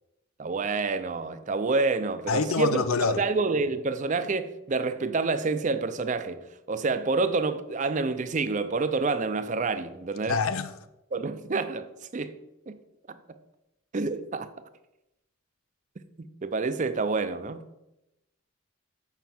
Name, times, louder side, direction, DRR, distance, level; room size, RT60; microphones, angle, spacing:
voice 1, 0.4-2.8 3.2-10.4 11.1-12.4 12.7-12.8 13.1-13.2 13.9-14.5 16.2-17.6, right 3 dB, 35° right, 0.5 m, -28 dB
voice 2, 2.3-3.2 10.3-10.7, left 4 dB, 90° left, 0.6 m, -25 dB
7.2 x 5.6 x 5.9 m
head